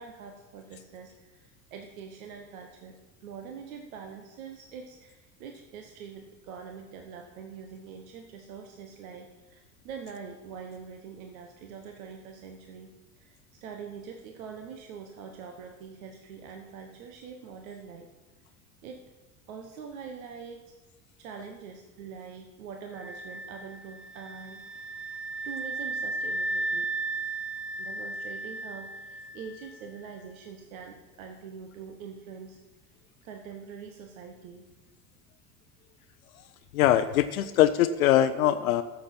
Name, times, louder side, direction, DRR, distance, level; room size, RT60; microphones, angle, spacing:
voice 1, 0.0-18.1 18.8-19.0 19.5-20.7 21.2-25.0 25.4-26.9 27.8-32.6 33.2-34.7, right 6 dB, 65° right, 4 dB, 1.2 m, -44 dB
sound 1, 22.9-29.7, right 2 dB, ahead, 0.4 m, -35 dB
voice 2, 36.7-38.8, left 12 dB, 70° left, 10 dB, 0.6 m, -22 dB
13.5 x 7.3 x 4.4 m, 1.1 s
figure-of-eight pair, 75°, 44 cm